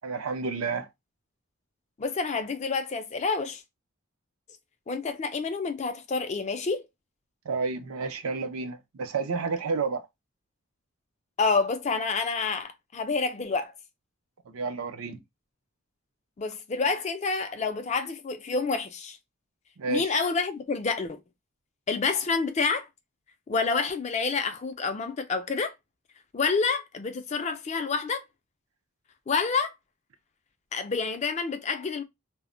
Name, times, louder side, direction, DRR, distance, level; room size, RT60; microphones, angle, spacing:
voice 1, 0.0-0.9 7.4-10.0 14.5-15.2 19.8-20.1, right 4 dB, 75° right, 0.5 m, -30 dB
voice 2, 2.0-3.6 4.9-6.9 11.4-13.7 16.4-19.2 19.9-21.2 21.9-22.9 23.5-25.7 26.3-28.2 29.3-29.7 30.7-32.0, left 4 dB, 30° left, 0.3 m, -28 dB
2.1 x 2.0 x 3.7 m
head